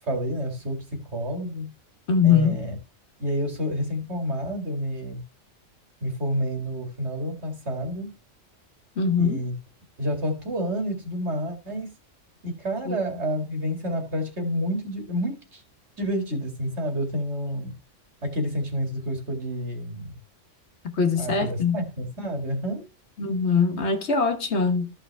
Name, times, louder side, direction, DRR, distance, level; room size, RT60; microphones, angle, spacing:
voice 1, 0.1-1.7 2.2-2.8 3.2-5.2 6.0-8.1 9.2-9.5 10.0-11.9 12.4-15.6 16.0-17.8 18.2-20.2 21.2-22.9, equal, 60° right, 2.5 m, -29 dB
voice 2, 2.1-2.6 9.0-9.4 12.9-13.0 20.8-21.8 23.2-24.9, left 5 dB, 60° left, 1.3 m, -22 dB
13.5 x 5.7 x 3.3 m
omnidirectional pair, 1.3 m